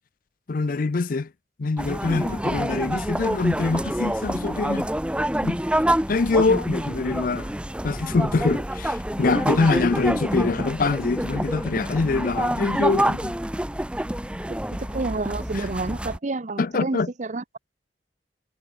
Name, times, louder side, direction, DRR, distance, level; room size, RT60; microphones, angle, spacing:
voice 1, 0.5-1.3 1.6-4.9 5.4-5.6 6.1-7.5 7.8-13.3 15.5-15.6 16.6-17.1, left 3 dB, 50° left, 0.5 m, -24 dB
sound 1, 1.8-16.2, right 1 dB, 5° right, 0.9 m, -27 dB
voice 2, 14.5-17.6, right 2 dB, 40° right, 0.8 m, -30 dB
head